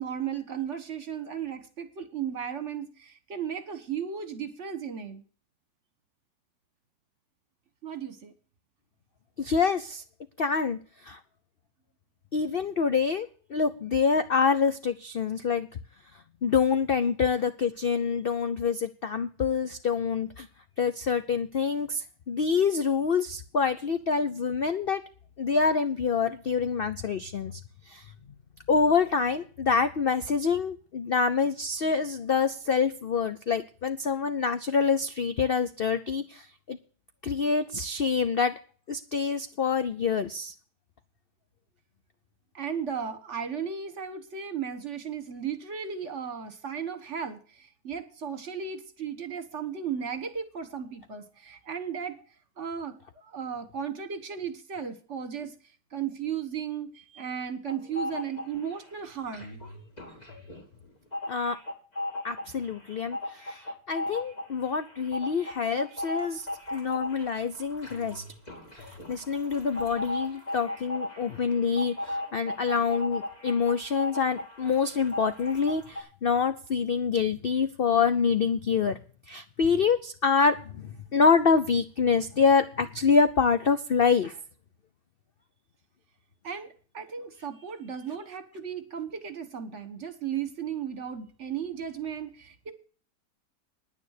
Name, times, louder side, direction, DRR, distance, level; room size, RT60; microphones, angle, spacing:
voice 1, 0.0-5.2 7.8-8.3 42.5-52.2 52.6-55.5 55.9-59.6 60.2-60.3 86.4-92.7, right 7 dB, 45° right, 10 dB, 1.6 m, -35 dB
voice 2, 9.4-10.0 10.4-11.2 12.3-15.7 16.4-20.5 20.8-25.0 25.4-27.6 27.9-28.1 28.7-36.8 37.2-38.5 38.9-40.5 61.3-61.6 62.2-68.2 68.8-79.0 79.3-84.4, left 5 dB, 60° left, 11 dB, 0.6 m, -26 dB
sound 1, 57.7-58.9 59.2-76.0, left 1 dB, 25° left, 2.9 m, -37 dB
10.0 x 9.6 x 6.6 m, 0.41 s
omnidirectional pair, 1.8 m